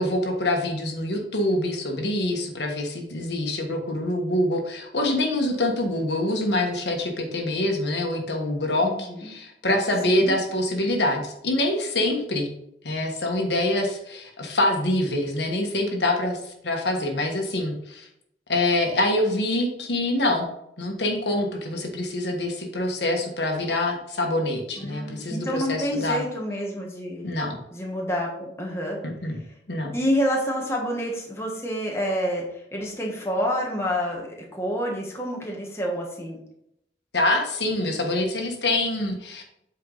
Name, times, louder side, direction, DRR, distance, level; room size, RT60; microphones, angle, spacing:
voice 1, 0.0-12.5 12.8-18.1 18.5-20.4 20.8-26.2 27.2-27.6 29.0-29.4 29.7-29.9 37.1-39.4, left 1 dB, 70° left, 2 dB, 1.4 m, -25 dB
voice 2, 8.8-9.3 10.0-10.3 24.8-27.3 27.7-29.0 29.9-32.4 32.7-34.3 34.5-36.4, equal, 15° left, -1 dB, 1.3 m, -28 dB
8.1 x 4.6 x 4.0 m, 0.76 s
head